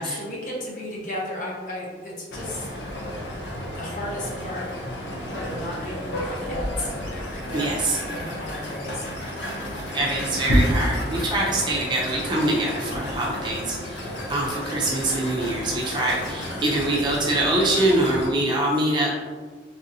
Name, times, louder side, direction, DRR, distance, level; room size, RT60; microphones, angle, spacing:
voice 1, 0.0-2.7 3.7-4.7 5.4-7.7 8.0-9.1, left 1 dB, 45° left, -4 dB, 0.8 m, -34 dB
sound 1, 2.3-18.3, equal, 80° left, 0.7 m, -30 dB
voice 2, 7.5-8.0 9.9-19.1, right 1 dB, 25° right, -4 dB, 0.5 m, -24 dB
3.3 x 2.6 x 2.7 m, 1.4 s
head